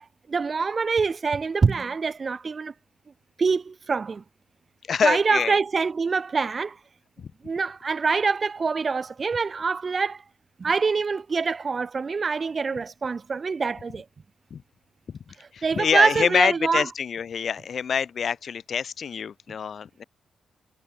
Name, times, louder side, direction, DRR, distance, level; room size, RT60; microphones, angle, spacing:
voice 1, 0.0-2.7 3.4-4.2 5.0-6.8 7.4-10.2 10.6-14.0 15.4-16.9, right 4 dB, 50° right, 6.3 m, -25 dB
voice 2, 4.9-5.6 7.2-7.3 14.5-14.6 15.1-15.2 15.5-20.0, left 7 dB, 65° left, 1.8 m, -26 dB
hypercardioid pair, 40°, 0 cm